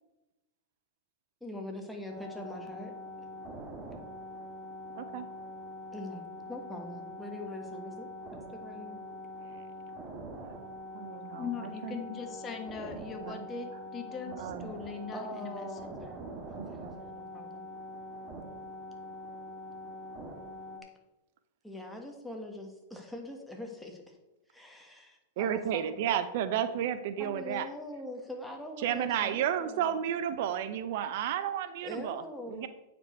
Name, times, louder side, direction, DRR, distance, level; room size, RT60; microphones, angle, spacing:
voice 1, 1.4-2.9 5.9-6.2 6.5-9.0 15.1-17.6 21.6-24.2 24.5-26.0 27.2-29.9 31.8-32.7, left 1 dB, ahead, 1 dB, 1.6 m, -43 dB
sound 1, 2.1-20.8, left 1 dB, 25° right, 1.5 m, -44 dB
voice 2, 5.0-5.3 10.9-12.0 13.2-13.4 14.3-14.7 16.6-16.9 25.4-27.7 28.8-32.2 32.5-32.7, right 10 dB, 60° right, 12 dB, 0.5 m, -32 dB
voice 3, 11.3-13.7 13.9-15.7, left 5 dB, 25° left, 5 dB, 1.2 m, -40 dB
8.7 x 5.1 x 4.5 m, 0.98 s
hypercardioid pair, 120°, 0 cm